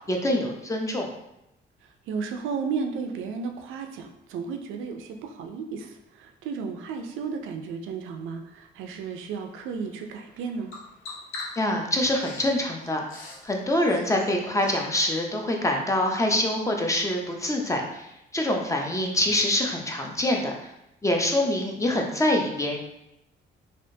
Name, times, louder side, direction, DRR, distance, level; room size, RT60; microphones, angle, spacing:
voice 1, 0.1-1.1 11.6-18.1 18.3-20.7 21.0-22.8, left 1 dB, 15° left, 1 dB, 0.5 m, -25 dB
voice 2, 2.1-10.7, right 5 dB, 90° right, 5 dB, 0.4 m, -33 dB
Bird vocalization bird call bird song, 9.2-14.8, left 3 dB, 80° left, 0.8 m, -44 dB
3.4 x 2.5 x 2.6 m, 0.86 s
cardioid pair, 90°, 20 cm